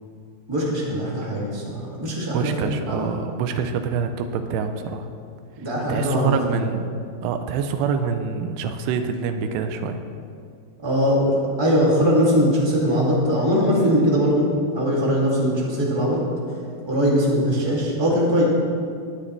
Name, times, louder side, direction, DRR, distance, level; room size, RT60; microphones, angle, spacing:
voice 1, 0.5-2.5 2.9-3.1 5.6-6.6 10.8-14.5 14.7-16.2 16.8-18.4, equal, 10° right, -5 dB, 1.5 m, -21 dB
voice 2, 2.3-5.1 5.9-6.9 7.2-10.0, right 6 dB, 85° right, 7 dB, 2.8 m, -26 dB
19.0 x 9.9 x 3.4 m, 2.3 s
omnidirectional pair, 4.8 m